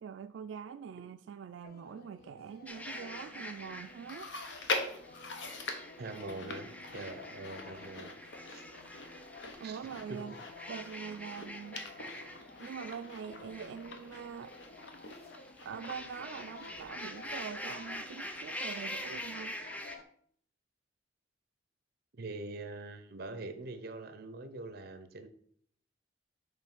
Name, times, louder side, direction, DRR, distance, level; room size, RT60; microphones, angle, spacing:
voice 1, 0.0-4.3 9.6-10.4 10.7-11.9 12.6-14.5 15.6-19.6, right 7 dB, 90° right, 9 dB, 0.3 m, -44 dB
sound 1, 1.6-20.0, left 3 dB, 55° left, 0.6 m, -53 dB
sound 2, 2.7-20.0, left 1 dB, 10° left, 0.5 m, -46 dB
Chewing mastication, 4.1-17.6 17.9-18.0 18.9-19.0, left 3 dB, 85° left, 1.0 m, -43 dB
voice 2, 6.0-8.1 8.5-8.7 9.6-9.8 10.1-10.4 22.1-25.3, right 2 dB, 55° right, 10 dB, 0.7 m, -43 dB
6.9 x 3.2 x 5.9 m, 0.62 s
head